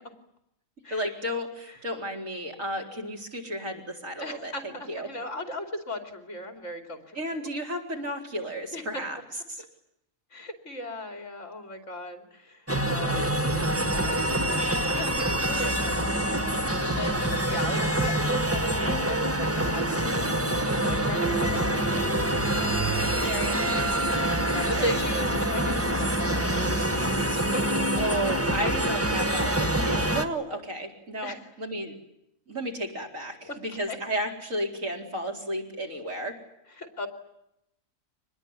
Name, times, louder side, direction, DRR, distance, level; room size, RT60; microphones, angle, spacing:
voice 1, 0.9-4.5 4.9-5.1 7.1-9.2 9.5-9.6 23.2-24.0 24.8-25.0 28.0-31.9 32.5-36.3, right 1 dB, 75° right, 1 dB, 4.6 m, -33 dB
voice 2, 4.2-7.2 8.7-9.0 10.3-22.0 22.6-23.8 24.5-27.9 31.2-31.5 33.5-33.6 33.9-34.0 36.8-37.1, equal, 60° left, 6 dB, 3.3 m, -37 dB
sound 1, 12.7-30.3, right 1 dB, 10° right, 1.4 m, -26 dB
25.0 x 20.5 x 9.6 m, 0.83 s
omnidirectional pair, 1.4 m